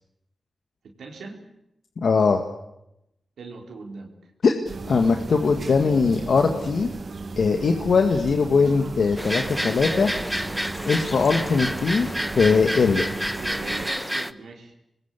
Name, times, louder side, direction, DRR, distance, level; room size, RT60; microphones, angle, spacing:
voice 1, 0.8-1.4 3.4-4.3 13.4-14.7, right 4 dB, 90° right, 1 dB, 4.1 m, -40 dB
voice 2, 2.0-2.4 4.4-4.5 4.9-6.9 7.4-10.1 10.8-13.0, left 4 dB, 75° left, 5 dB, 2.1 m, -20 dB
sound 1, 4.7-13.9, right 3 dB, 65° right, 2.2 m, -35 dB
sound 2, 9.2-14.3, equal, 5° right, 1.3 m, -29 dB
26.0 x 21.5 x 8.4 m, 0.83 s
cardioid pair, 50°, 0 cm